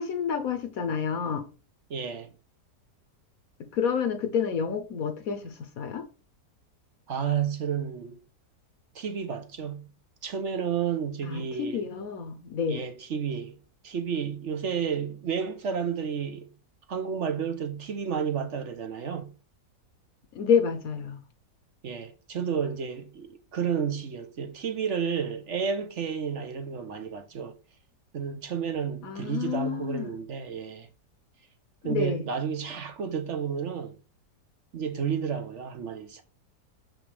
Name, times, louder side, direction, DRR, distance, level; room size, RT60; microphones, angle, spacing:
voice 1, 0.0-1.5 3.6-6.1 11.2-12.8 20.3-21.2 29.0-30.1 31.8-32.2, left 7 dB, 60° left, 1.3 m, -29 dB
voice 2, 1.9-2.3 7.1-8.2 8.9-9.9 10.2-11.9 12.7-13.6 13.8-16.5 16.9-19.3 21.8-27.5 28.1-30.9 31.8-34.0 34.7-36.2, right 7 dB, 50° right, 1.1 m, -31 dB
6.8 x 6.1 x 3.4 m
omnidirectional pair, 1.8 m